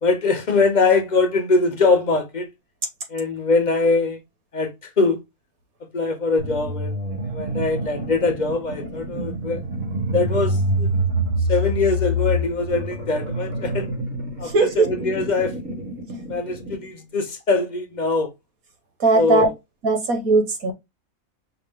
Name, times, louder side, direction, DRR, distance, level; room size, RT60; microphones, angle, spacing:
voice 1, 0.0-2.5 3.1-4.2 4.5-4.7 5.0-5.2 5.9-6.9 7.3-9.6 10.1-10.9 11.5-13.9 14.4-15.6 16.3-18.3 19.1-19.5, left 3 dB, 40° left, 0.8 m, -22 dB
sound 1, 6.4-16.9, equal, 65° right, 2.1 m, -26 dB
voice 2, 14.4-14.9 19.0-19.5 19.8-20.7, right 3 dB, 90° right, 1.7 m, -18 dB
5.7 x 2.6 x 3.4 m
omnidirectional pair, 1.5 m